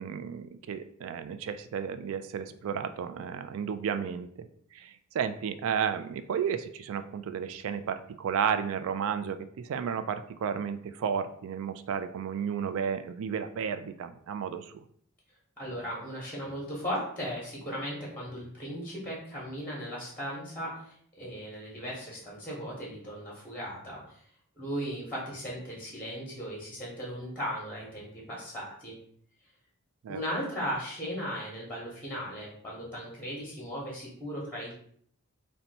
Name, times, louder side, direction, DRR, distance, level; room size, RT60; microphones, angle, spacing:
voice 1, 0.0-14.7 30.0-30.2, right 7 dB, 65° right, 11 dB, 0.3 m, -33 dB
voice 2, 15.6-24.2 24.6-28.9 30.1-34.7, equal, 5° left, -4 dB, 0.8 m, -37 dB
2.7 x 2.2 x 4.0 m, 0.62 s
head